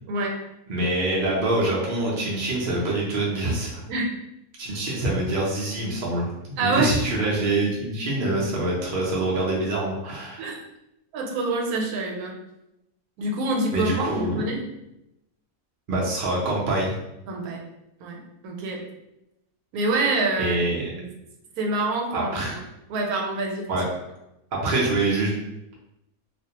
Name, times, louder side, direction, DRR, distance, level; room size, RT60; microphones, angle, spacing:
voice 1, 0.1-0.4 3.9-4.1 6.6-7.0 10.4-10.6 11.1-12.3 13.2-14.6 17.3-17.6 18.0-18.8 19.7-20.6 20.9-21.1 21.6-22.6 22.9-23.7, right 2 dB, 85° right, 1 dB, 1.1 m, -26 dB
voice 2, 0.7-3.7 4.6-10.5 13.7-14.4 15.9-16.9 20.4-20.9 22.1-22.6 23.7-23.8 24.6-25.3, right 2 dB, 60° right, -4 dB, 0.5 m, -25 dB
2.4 x 2.1 x 2.8 m, 0.88 s
omnidirectional pair, 1.5 m